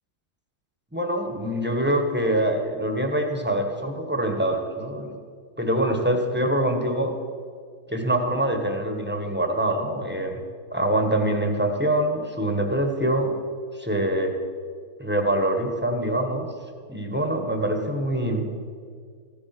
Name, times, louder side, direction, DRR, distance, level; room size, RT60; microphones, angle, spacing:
voice 1, 0.9-5.1 5.6-7.1 7.9-10.4 10.7-13.3 13.7-14.4 15.0-16.5 16.9-18.5, right 1 dB, 5° right, 3 dB, 1.3 m, -24 dB
15.5 x 11.0 x 6.0 m, 2.1 s
omnidirectional pair, 1.7 m